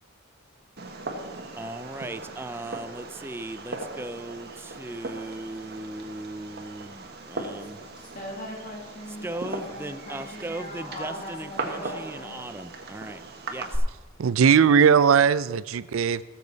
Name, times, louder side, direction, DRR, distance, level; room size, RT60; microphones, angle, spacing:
Fireworks, 0.8-13.8, right 3 dB, 55° right, 1.4 m, -38 dB
voice 1, 1.6-7.8 9.1-13.2 13.5-13.8, right 2 dB, 10° right, 11 dB, 0.4 m, -38 dB
voice 2, 8.0-12.5, left 1 dB, 40° left, -2 dB, 1.5 m, -40 dB
voice 3, 14.2-16.2, right 7 dB, 85° right, 17 dB, 0.4 m, -19 dB
18.0 x 7.2 x 4.0 m, 1.2 s
head